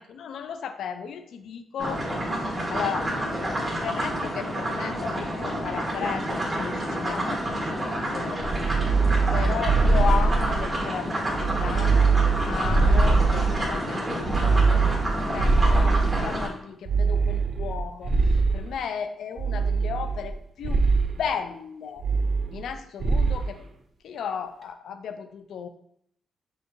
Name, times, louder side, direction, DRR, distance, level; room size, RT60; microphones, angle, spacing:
voice 1, 0.0-2.1 2.7-3.1 3.7-8.5 9.3-12.1 12.5-14.8 15.2-20.9 21.2-22.0 22.5-23.6 24.0-25.7, left 7 dB, 80° left, 9 dB, 0.3 m, -34 dB
sound 1, 1.8-16.5, equal, 25° right, 1.4 m, -29 dB
sound 2, 8.4-10.8 11.3-13.7 14.2-16.4 16.9-18.7 19.4-20.3 20.6-21.1 22.0-22.7 23.0-23.5, right 4 dB, 55° right, 0.4 m, -22 dB
6.4 x 2.3 x 2.6 m, 0.72 s
cardioid pair, 120°, 0 cm